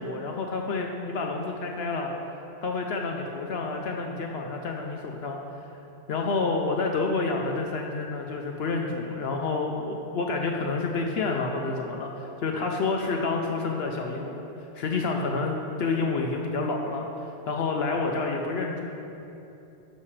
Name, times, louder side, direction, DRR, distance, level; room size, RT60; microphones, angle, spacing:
voice 1, 0.0-2.1 2.6-5.4 6.1-14.4 14.8-17.0 17.5-18.8, left 3 dB, 65° left, 2 dB, 0.8 m, -29 dB
11.5 x 6.5 x 3.2 m, 2.9 s
omnidirectional pair, 1.2 m